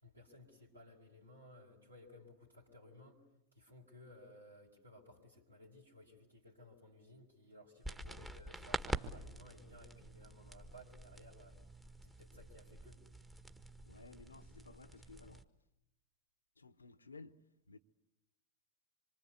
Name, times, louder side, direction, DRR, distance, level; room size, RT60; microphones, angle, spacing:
voice 1, 0.0-3.2 3.5-13.0, left 1 dB, 80° right, 4.6 m, -59 dB
sound 1, 7.8-15.4, right 1 dB, 10° right, 1.5 m, -46 dB
voice 2, 13.8-15.5 16.6-17.4 17.7-17.8, left 3 dB, 75° left, 1.0 m, -56 dB
26.0 x 23.5 x 8.3 m
figure-of-eight pair, 90°, 0 cm